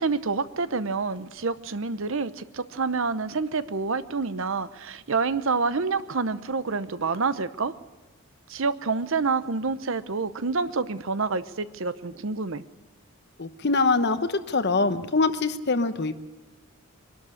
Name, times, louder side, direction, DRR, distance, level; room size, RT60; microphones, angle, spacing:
voice 1, 0.0-7.7 8.5-12.6, right 4 dB, 60° right, 14 dB, 0.8 m, -28 dB
voice 2, 13.4-16.2, left 3 dB, 50° left, 11 dB, 1.0 m, -24 dB
23.0 x 12.0 x 9.6 m, 1.2 s
head